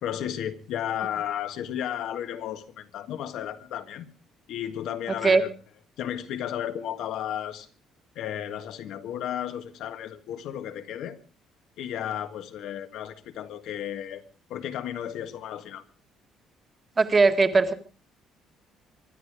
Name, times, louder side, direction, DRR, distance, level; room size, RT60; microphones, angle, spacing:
voice 1, 0.0-4.1 4.5-5.5 6.0-7.7 8.2-11.2 11.8-14.2 14.5-15.9, left 10 dB, 70° left, 1.6 m, -33 dB
voice 2, 17.0-17.7, right 4 dB, 20° right, 1.6 m, -19 dB
24.0 x 11.5 x 4.9 m
cardioid pair, 160°, 0 cm